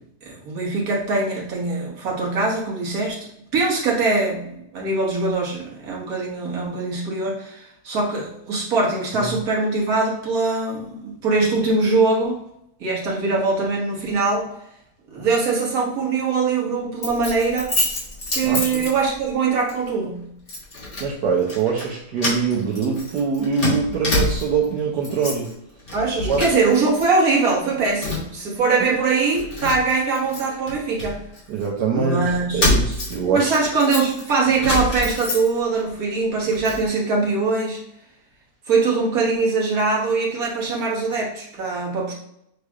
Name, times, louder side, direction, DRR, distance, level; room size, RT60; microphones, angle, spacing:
voice 1, 0.2-3.3 3.5-12.4 12.8-14.5 15.1-17.7 18.3-20.2 25.9-31.2 31.9-32.6 33.3-37.8 38.7-42.1, right 3 dB, 65° right, -3 dB, 1.7 m, -22 dB
Keys jangling, 17.0-19.3 19.7-19.9 20.5-21.1 21.4-21.9 22.2-24.7 25.0-25.5 25.8-27.0 27.3-28.4 28.9-29.0 29.3-31.7 32.3-35.8 36.2-36.8, left 2 dB, 35° left, 1.5 m, -27 dB
voice 2, 18.4-18.8 21.0-25.5 26.2-26.4 28.9-29.0 31.5-32.2 32.5-33.5, right 5 dB, 80° right, -3 dB, 1.3 m, -23 dB
6.4 x 3.3 x 2.3 m, 0.77 s
omnidirectional pair, 1.8 m